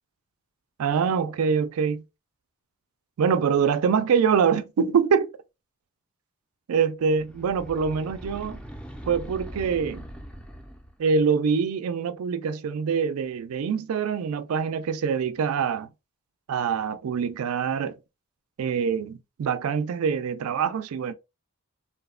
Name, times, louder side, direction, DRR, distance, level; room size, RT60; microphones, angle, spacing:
voice 1, 0.8-2.0 3.2-5.3 6.7-8.6 9.1-10.1 11.0-15.9 16.5-18.0 18.6-21.1, right 6 dB, 85° right, 0.3 m, -24 dB
sound 1, 7.2-11.0, equal, 5° left, 0.3 m, -41 dB
2.8 x 2.0 x 2.3 m
head